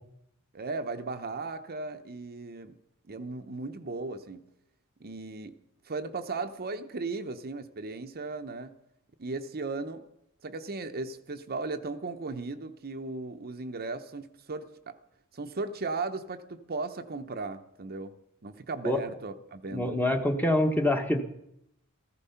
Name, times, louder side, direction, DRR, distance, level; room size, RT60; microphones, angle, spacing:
voice 1, 0.5-2.8 3.1-4.4 5.0-5.6 5.9-8.7 9.2-10.0 10.4-15.0 15.3-18.2 18.4-20.0, right 3 dB, 45° right, 7 dB, 0.8 m, -36 dB
voice 2, 19.7-21.2, left 1 dB, 10° left, 6 dB, 1.1 m, -25 dB
14.5 x 14.0 x 5.7 m, 0.80 s
head